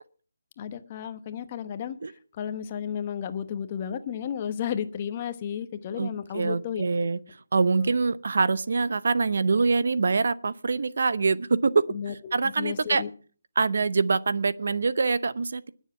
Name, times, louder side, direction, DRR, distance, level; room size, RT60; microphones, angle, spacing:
voice 1, 0.6-2.0 2.4-6.9 7.8-7.9 11.9-12.1 12.6-13.1, left 8 dB, 30° left, 10 dB, 1.0 m, -33 dB
voice 2, 6.0-7.2 7.5-13.0 13.6-15.7, right 4 dB, 60° right, 16 dB, 0.7 m, -25 dB
20.5 x 7.3 x 5.8 m, 0.42 s
figure-of-eight pair, 160°, 0 cm